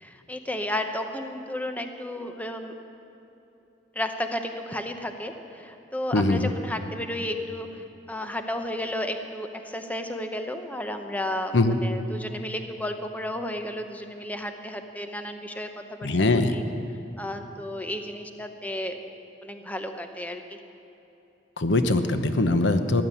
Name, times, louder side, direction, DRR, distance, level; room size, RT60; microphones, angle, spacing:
voice 1, 0.0-2.7 4.0-7.7 8.1-16.6 17.2-19.0 19.4-20.6, left 1 dB, 10° left, 6 dB, 0.8 m, -33 dB
voice 2, 6.1-6.5 11.5-11.8 16.0-16.6 21.6-23.0, left 2 dB, 75° left, 9 dB, 0.9 m, -22 dB
15.0 x 11.0 x 8.4 m, 2.9 s
head